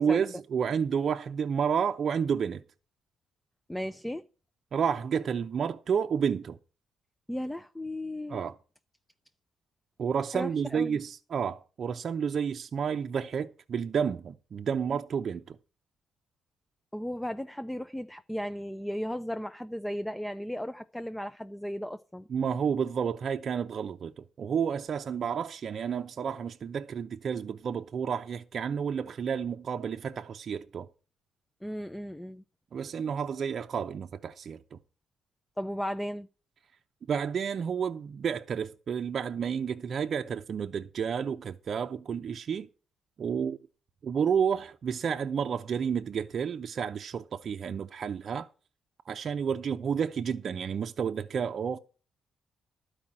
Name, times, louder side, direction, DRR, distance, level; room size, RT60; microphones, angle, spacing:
voice 1, 0.0-2.6 4.7-6.6 8.3-8.5 10.0-15.6 22.3-30.9 32.7-34.8 37.1-42.7 43.2-43.6 44.0-48.5 49.1-51.8, right 7 dB, 55° right, 0.6 m, -30 dB
voice 2, 3.7-4.2 7.3-8.4 10.3-11.0 16.9-22.3 31.6-32.4 35.6-36.3, equal, 5° left, 0.5 m, -35 dB
12.0 x 4.9 x 8.6 m
cardioid pair, 90°, 0 cm